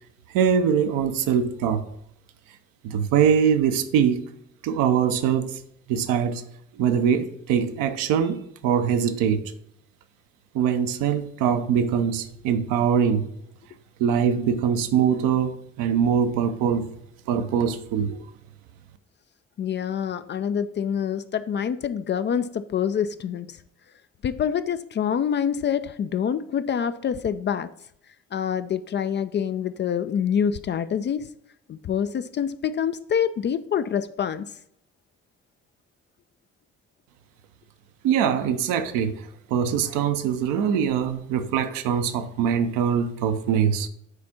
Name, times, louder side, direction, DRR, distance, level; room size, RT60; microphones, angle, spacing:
voice 1, 0.3-1.8 2.8-4.3 4.6-5.6 5.9-6.4 6.7-9.5 10.5-13.3 14.0-16.9 17.3-18.2 38.0-39.2 39.5-43.9, right 8 dB, 60° right, 0.8 m, -23 dB
voice 2, 19.6-23.6 24.2-27.7 28.3-31.3 31.7-34.5, left 8 dB, 30° left, 0.4 m, -26 dB
9.8 x 4.2 x 4.3 m
figure-of-eight pair, 40°, 37 cm